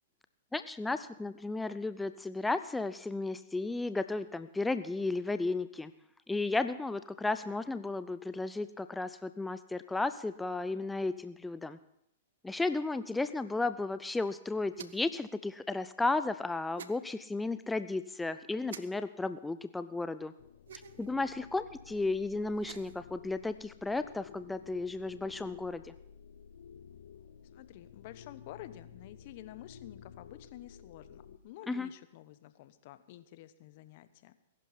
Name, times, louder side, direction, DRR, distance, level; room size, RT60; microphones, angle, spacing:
voice 1, 0.5-5.9 6.3-11.8 12.4-20.3 20.7-25.9 31.7-31.9, left 3 dB, 5° left, 11 dB, 0.5 m, -34 dB
sound 1, 14.7-15.2 16.8-17.0 18.7-18.8 20.7-21.1 22.5-23.0, right 8 dB, 75° right, 0.9 m, -47 dB
sound 2, 20.4-31.4, left 8 dB, 70° left, 0.8 m, -53 dB
voice 2, 27.5-34.3, left 14 dB, 50° left, 13 dB, 1.0 m, -50 dB
20.0 x 11.5 x 4.2 m, 0.78 s
hypercardioid pair, 115°, 0 cm